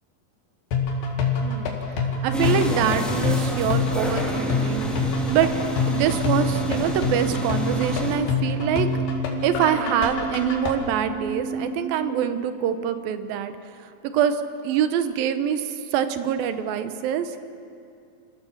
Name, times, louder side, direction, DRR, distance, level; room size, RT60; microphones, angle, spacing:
sound 1, 0.7-10.7, left 5 dB, 75° left, 3.8 m, -26 dB
voice 1, 1.4-1.8 2.2-4.9 5.3-5.5 5.9-8.9 9.4-13.5 13.8-17.4, right 9 dB, 80° right, 10 dB, 2.7 m, -25 dB
sound 2, 2.3-8.2, equal, ahead, 1.5 m, -30 dB
sound 3, 2.7-12.3, right 6 dB, 40° right, 1.8 m, -33 dB
27.0 x 15.0 x 7.2 m, 2.4 s
omnidirectional pair, 4.2 m